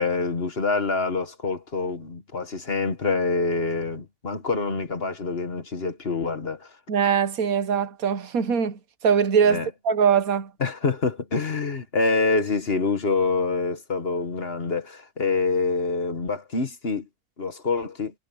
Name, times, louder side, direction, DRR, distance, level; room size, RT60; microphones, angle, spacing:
voice 1, 0.0-6.7 9.5-9.7 10.6-17.0 17.4-18.1, left 3 dB, 40° left, 1.7 m, -26 dB
voice 2, 6.9-10.5, right 7 dB, 70° right, 1.5 m, -22 dB
omnidirectional pair, 1.6 m